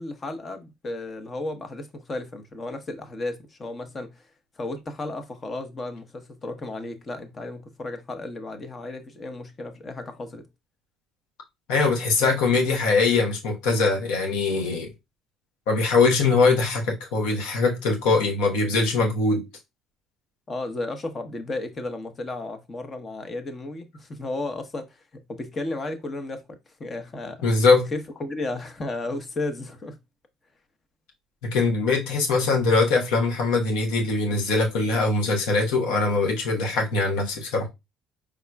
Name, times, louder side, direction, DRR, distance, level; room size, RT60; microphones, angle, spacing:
voice 1, 0.0-4.2 4.6-10.5 20.5-27.5 27.9-30.0, left 2 dB, 35° left, 1.0 m, -34 dB
voice 2, 11.7-14.9 15.7-19.4 27.4-27.9 31.4-37.7, left 3 dB, 80° left, 1.1 m, -22 dB
4.7 x 3.6 x 2.3 m
supercardioid pair, 75°, 0 cm